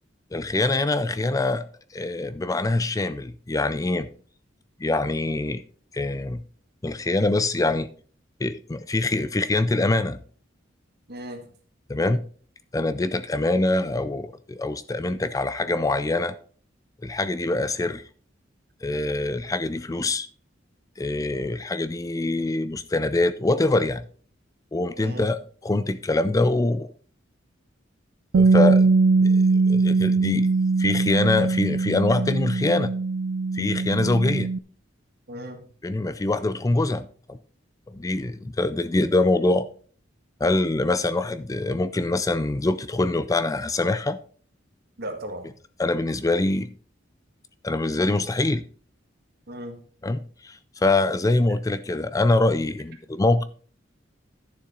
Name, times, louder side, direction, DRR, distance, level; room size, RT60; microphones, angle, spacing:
voice 1, 0.3-1.7 1.9-4.1 4.8-5.6 5.9-6.4 6.8-7.9 8.4-10.2 11.9-12.2 12.7-16.3 17.0-18.0 18.8-20.3 21.0-24.1 24.7-26.9 28.3-28.9 29.2-30.5 30.8-32.9 33.5-34.5 35.8-37.4 37.9-39.7 40.4-44.2 45.8-46.7 47.6-48.6 50.0-53.4, left 2 dB, 20° left, 0.4 m, -24 dB
voice 2, 11.1-11.4 25.0-25.3 35.3-35.7 45.0-45.6 49.5-49.8, right 1 dB, 55° right, 1.9 m, -36 dB
Bass guitar, 28.3-34.6, right 3 dB, 80° right, 0.4 m, -21 dB
11.5 x 6.9 x 3.8 m
head